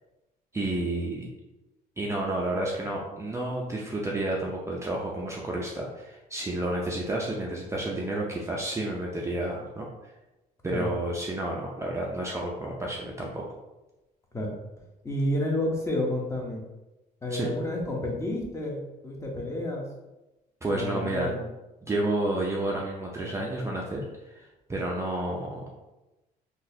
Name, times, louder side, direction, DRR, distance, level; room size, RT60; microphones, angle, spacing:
voice 1, 0.5-1.3 2.0-10.1 10.6-13.4 17.3-17.5 20.6-21.3 21.8-25.6, right 1 dB, 15° right, -3 dB, 0.4 m, -30 dB
voice 2, 15.0-16.6 17.2-19.8 20.7-21.5, left 1 dB, 15° left, -1 dB, 0.7 m, -30 dB
3.9 x 2.3 x 2.7 m, 1.0 s
cardioid pair, 110°, 17 cm